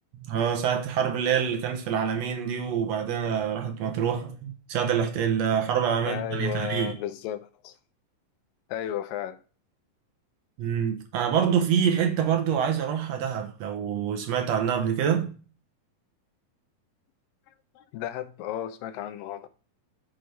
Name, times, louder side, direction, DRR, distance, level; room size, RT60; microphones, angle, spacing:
voice 1, 0.1-7.0 10.6-15.4, right 8 dB, 75° right, 1.6 m, -26 dB
voice 2, 6.1-7.7 8.7-9.4 17.8-19.5, left 11 dB, 80° left, 2.3 m, -34 dB
6.4 x 6.2 x 3.3 m
omnidirectional pair, 4.0 m